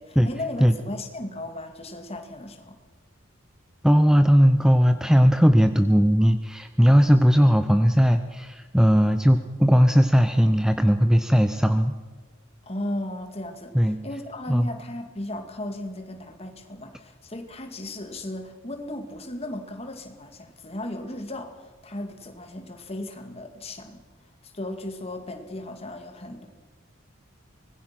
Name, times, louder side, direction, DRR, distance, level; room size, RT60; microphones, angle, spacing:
voice 1, 0.0-2.8 12.6-24.0 24.4-26.5, left 1 dB, 30° left, 6 dB, 2.2 m, -36 dB
voice 2, 3.8-11.9 13.7-14.0 14.5-14.7, equal, 5° right, 9 dB, 0.7 m, -18 dB
24.5 x 20.0 x 6.0 m, 1.4 s
head